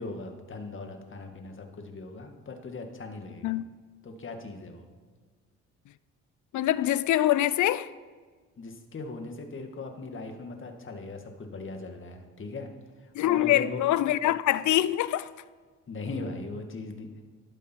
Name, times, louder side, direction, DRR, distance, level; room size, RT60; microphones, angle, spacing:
voice 1, 0.0-3.6 4.0-4.9 8.6-12.7 13.3-13.8 15.9-17.1, left 3 dB, 40° left, 2.1 m, -39 dB
voice 2, 6.5-7.9 13.1-15.3, left 14 dB, 75° left, 0.6 m, -24 dB
13.5 x 12.0 x 4.6 m
cardioid pair, 90°, 30 cm